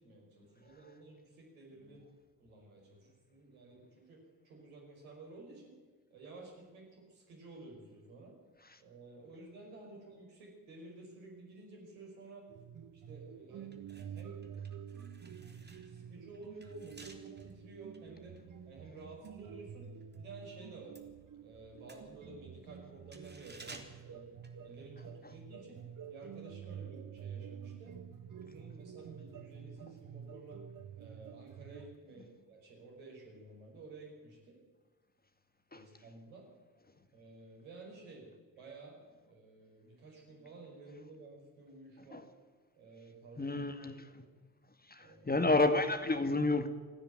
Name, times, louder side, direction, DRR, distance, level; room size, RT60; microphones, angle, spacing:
voice 1, 0.0-2.0 2.4-5.7 6.1-8.4 8.8-12.5 13.1-14.5 14.8-18.4 18.7-19.9 20.2-21.0 21.4-24.4 24.6-25.8 26.1-28.0 28.3-30.6 31.0-34.6 35.7-36.5 37.1-38.3 38.5-42.2 42.7-44.3 45.0-45.3, right 3 dB, 80° right, 5.5 m, -53 dB
sound 1, 12.5-32.0, right 8 dB, 50° right, 1.2 m, -49 dB
sound 2, 13.0-13.2 13.6-20.2 20.5-25.2 25.5-25.6, right 3 dB, 25° right, 3.6 m, -57 dB
voice 2, 43.4-44.2 44.9-46.7, left 2 dB, 20° left, 2.2 m, -30 dB
28.0 x 10.0 x 9.2 m
hypercardioid pair, 40°, 41 cm